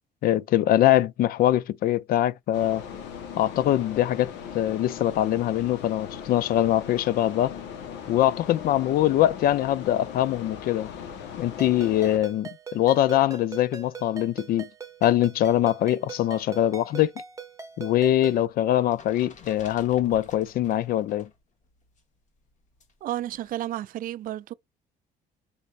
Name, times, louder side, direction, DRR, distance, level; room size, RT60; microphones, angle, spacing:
voice 1, 0.2-2.8 3.4-7.5 8.1-10.9 11.4-14.7 15.0-17.1 17.8-21.3, left 12 dB, 60° left, 0.4 m, -23 dB
sound 1, 2.5-12.2, left 8 dB, 85° left, 1.0 m, -39 dB
Ringtone, 11.6-18.4, right 5 dB, 20° right, 0.8 m, -42 dB
sound 2, 18.3-21.4 21.6-23.5, left 4 dB, 45° left, 1.2 m, -51 dB
voice 2, 23.0-24.5, right 13 dB, 55° right, 0.4 m, -32 dB
5.3 x 3.4 x 2.5 m
cardioid pair, 110°, 17 cm